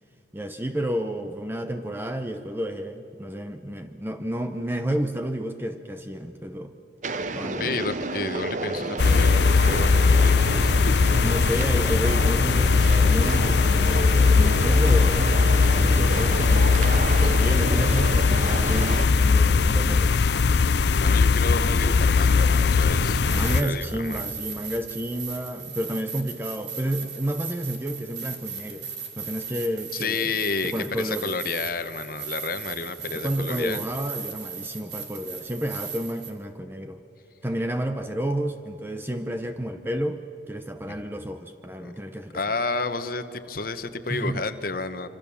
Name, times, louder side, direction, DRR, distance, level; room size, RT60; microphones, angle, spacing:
voice 1, 0.3-6.7 7.3-7.8 11.2-16.8 17.2-20.2 23.3-28.9 29.2-30.3 30.6-31.4 33.1-37.0 37.4-42.4 44.1-44.4, equal, 10° right, 7 dB, 0.7 m, -31 dB
sound 1, 7.0-19.1, right 2 dB, 40° right, 0.8 m, -31 dB
voice 2, 7.6-10.9 17.2-17.3 21.0-23.2 23.5-24.3 29.9-33.8 40.9-41.1 41.8-41.9 42.3-45.1, left 4 dB, 50° left, 9 dB, 1.1 m, -31 dB
sound 2, 9.0-23.6, left 4 dB, 65° left, 0.5 m, -19 dB
sound 3, 23.1-36.3, right 6 dB, 65° right, 3.0 m, -37 dB
26.0 x 25.0 x 7.1 m, 2.9 s
head